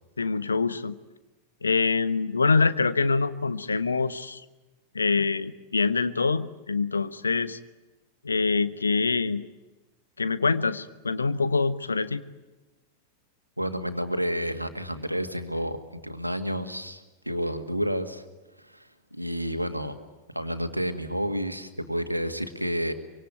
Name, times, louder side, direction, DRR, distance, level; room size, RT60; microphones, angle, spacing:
voice 1, 0.2-0.9 1.6-4.4 4.9-7.6 8.2-9.5 10.2-12.2, left 4 dB, 75° left, 13 dB, 1.1 m, -25 dB
voice 2, 13.6-18.3 18.6-20.0 20.3-22.9, equal, 90° right, 8 dB, 2.0 m, -30 dB
25.0 x 24.0 x 9.2 m, 1.1 s
figure-of-eight pair, 90°, 0 cm